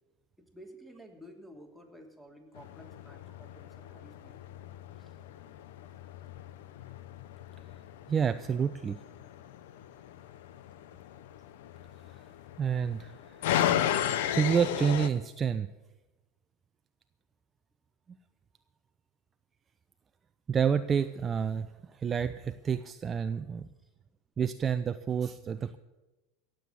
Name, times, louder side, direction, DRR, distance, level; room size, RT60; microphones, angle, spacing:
voice 1, 0.5-4.4 4.9-5.1 23.8-23.9, equal, ahead, 3 dB, 3.0 m, -52 dB
sound 1, 2.6-15.1, left 11 dB, 70° left, 0.9 m, -35 dB
voice 2, 8.1-9.0 12.6-13.1 14.3-15.7 20.5-21.7 21.9-23.7 24.4-25.8, right 7 dB, 30° right, 11 dB, 0.6 m, -29 dB
17.0 x 7.8 x 8.5 m, 1.1 s
hypercardioid pair, 90°, 0 cm